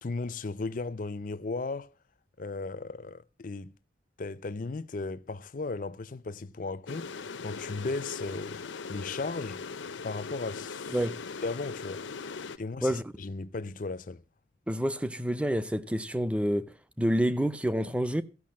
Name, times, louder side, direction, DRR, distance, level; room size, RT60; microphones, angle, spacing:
voice 1, 0.0-1.9 2.4-3.8 4.2-7.1 7.4-8.6 8.9-9.6 10.0-11.0 11.4-12.0 12.6-14.2, left 3 dB, 45° left, 0.5 m, -36 dB
sound 1, 6.9-12.6, left 5 dB, 85° left, 0.7 m, -40 dB
voice 2, 14.7-18.2, equal, 5° right, 0.6 m, -28 dB
15.0 x 6.3 x 7.4 m
head